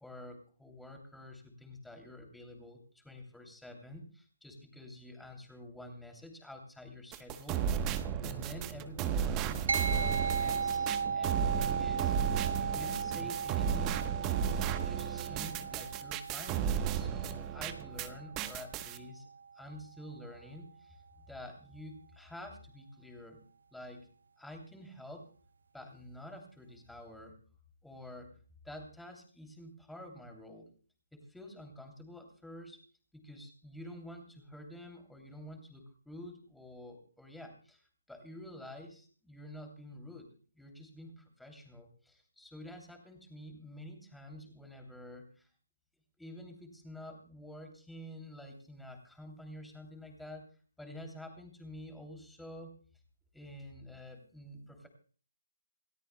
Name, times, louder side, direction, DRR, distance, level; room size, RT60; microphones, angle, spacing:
voice 1, 0.0-12.1 12.6-14.0 14.5-23.4 23.7-24.1 24.4-25.3 25.7-27.3 27.8-28.4 28.6-30.7 31.1-32.8 33.1-40.3 40.5-45.5 46.2-50.5 50.8-52.7 53.3-54.9, left 1 dB, ahead, 3 dB, 2.9 m, -49 dB
sound 1, 7.1-18.1 18.4-19.0, right 8 dB, 15° right, 1.0 m, -34 dB
sound 2, 9.7-19.4, right 5 dB, 70° right, 0.6 m, -37 dB
28.0 x 13.5 x 2.2 m, 0.42 s
hypercardioid pair, 160°, 0 cm